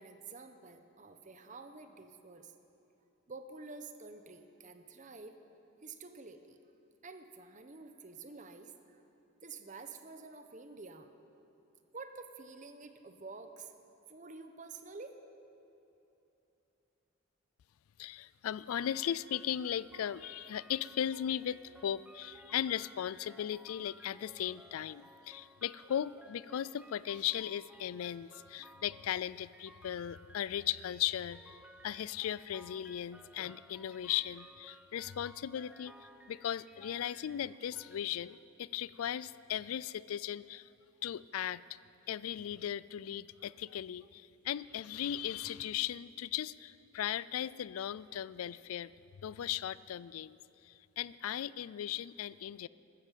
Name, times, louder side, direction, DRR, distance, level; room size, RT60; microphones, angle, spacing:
voice 1, 0.0-2.5 3.3-5.4 5.8-6.6 7.0-9.0 9.4-11.1 11.9-13.7 14.1-15.2, right 4 dB, 35° right, 8 dB, 0.9 m, -49 dB
voice 2, 18.0-31.6 31.8-40.7 41.0-41.8 42.1-48.9 49.2-50.4 50.6-52.7, left 10 dB, 90° left, 19 dB, 0.4 m, -37 dB
sound 1, 18.7-38.0, right 1 dB, 5° right, 0.7 m, -58 dB
14.5 x 13.0 x 7.4 m, 2.9 s
head